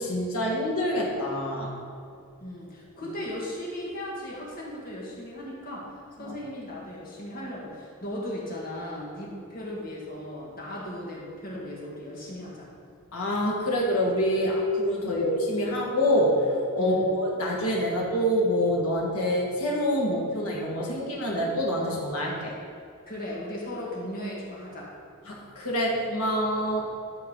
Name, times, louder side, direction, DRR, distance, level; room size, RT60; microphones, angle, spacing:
voice 1, 0.0-1.7 6.2-6.3 13.1-16.5 16.7-22.5 25.2-26.9, equal, 75° left, -3 dB, 1.7 m, -26 dB
voice 2, 2.4-12.7 15.1-15.3 16.8-17.1 23.1-24.9, left 1 dB, 40° left, -4 dB, 1.8 m, -37 dB
12.0 x 4.5 x 3.8 m, 2.4 s
head